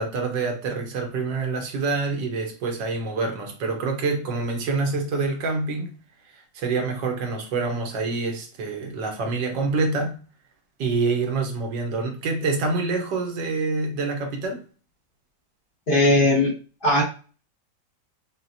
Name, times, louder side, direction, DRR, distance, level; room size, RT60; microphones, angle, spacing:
voice 1, 0.0-5.9 6.5-10.2 10.8-14.6, right 3 dB, 80° right, 1.6 m, -26 dB
voice 2, 15.9-17.0, left 1 dB, 35° left, 1.2 m, -19 dB
5.9 x 2.4 x 2.7 m
omnidirectional pair, 2.0 m